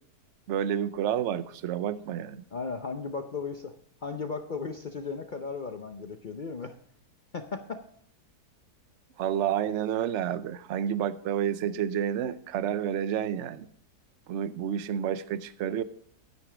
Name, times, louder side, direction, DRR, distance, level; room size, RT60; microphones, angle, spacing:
voice 1, 0.5-2.4 9.2-13.7 14.3-15.8, right 9 dB, 60° right, 14 dB, 0.8 m, -30 dB
voice 2, 2.5-3.7 4.0-6.8 7.3-7.8, left 4 dB, 65° left, 8 dB, 0.4 m, -36 dB
12.5 x 9.5 x 4.9 m, 0.64 s
omnidirectional pair, 1.8 m